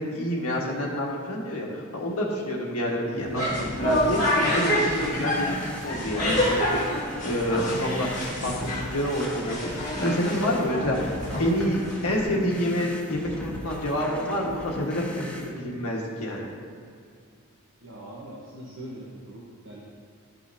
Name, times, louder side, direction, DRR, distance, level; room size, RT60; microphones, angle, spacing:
voice 1, 0.0-6.8 7.2-16.5, equal, 80° left, -3 dB, 1.6 m, -28 dB
sound 1, 3.2-12.2, left 1 dB, 35° left, 1.9 m, -28 dB
sound 2, 3.5-15.5, equal, 5° left, 0.6 m, -38 dB
voice 2, 17.8-19.8, right 1 dB, 65° right, -7 dB, 1.2 m, -42 dB
13.0 x 5.6 x 2.8 m, 2.3 s
head